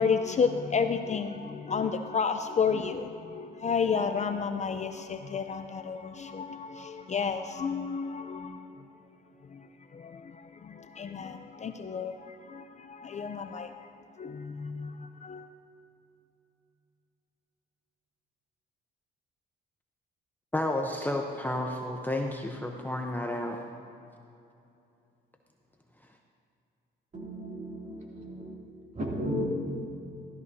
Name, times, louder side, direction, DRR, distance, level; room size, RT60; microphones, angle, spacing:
voice 1, 0.0-8.6 9.5-9.6 9.9-13.9 14.2-15.5, left 6 dB, 35° left, 8 dB, 0.5 m, -31 dB
voice 2, 20.5-23.6, left 1 dB, 10° left, 2 dB, 0.8 m, -31 dB
voice 3, 27.1-28.6 28.9-29.5, equal, 35° right, -2 dB, 2.7 m, -34 dB
15.5 x 13.0 x 2.7 m, 2.7 s
cardioid pair, 90°, 20 cm